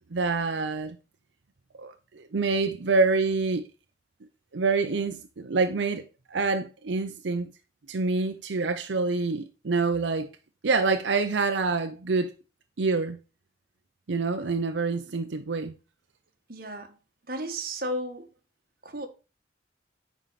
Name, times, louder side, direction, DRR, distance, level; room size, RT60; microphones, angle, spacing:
voice 1, 0.1-1.0 1.7-3.7 4.5-7.5 7.9-10.3 10.6-12.3 12.8-13.2 14.1-15.8, right 4 dB, 85° right, 0.6 m, -26 dB
voice 2, 16.5-17.0 17.3-18.3 18.8-19.1, right 1 dB, 50° right, 1.4 m, -33 dB
9.2 x 4.6 x 4.1 m
head